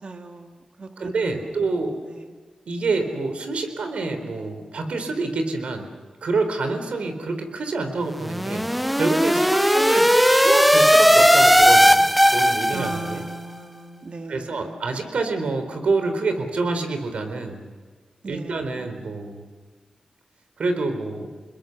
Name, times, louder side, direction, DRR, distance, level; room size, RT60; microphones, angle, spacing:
voice 1, 0.0-1.4 2.0-2.3 12.7-14.9 18.2-18.9, right 3 dB, 60° right, 4 dB, 2.3 m, -38 dB
voice 2, 1.0-2.0 2.7-5.9 6.2-8.6 8.9-13.2 14.3-17.6 18.2-19.4 20.6-21.3, right 3 dB, 80° right, 7 dB, 4.1 m, -27 dB
sound 1, 8.1-13.2, equal, ahead, 0.9 m, -17 dB
28.5 x 21.5 x 6.8 m, 1.4 s
cardioid pair, 55°, 2 cm